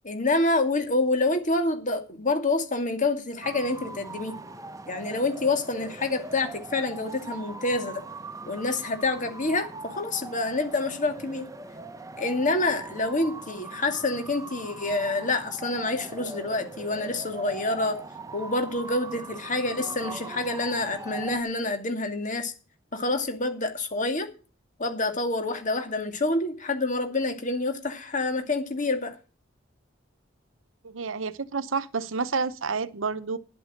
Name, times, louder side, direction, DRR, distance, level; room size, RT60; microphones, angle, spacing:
voice 1, 0.0-4.4 4.9-8.0 8.5-11.5 12.2-18.0 18.3-22.5 22.9-24.3 24.8-29.2, left 2 dB, 40° left, 2.3 m, -27 dB
sound 1, 3.4-21.4, right 3 dB, 15° right, 1.1 m, -41 dB
voice 2, 30.8-33.4, right 5 dB, 85° right, 0.8 m, -29 dB
11.0 x 8.2 x 6.5 m
head